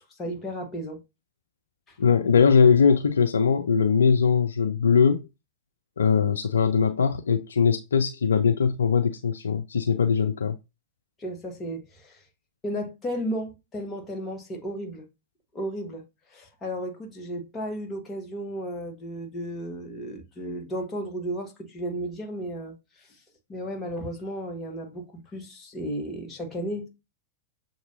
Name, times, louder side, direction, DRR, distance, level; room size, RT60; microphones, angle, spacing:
voice 1, 0.2-1.0 1.9-2.0 11.2-12.2 12.6-15.1 15.5-16.0 16.3-23.1 23.5-26.9, equal, 20° left, 1.5 m, -34 dB
voice 2, 2.0-5.3 6.0-10.6, left 6 dB, 70° left, 0.4 m, -21 dB
6.7 x 2.6 x 2.7 m
figure-of-eight pair, 95°, 0 cm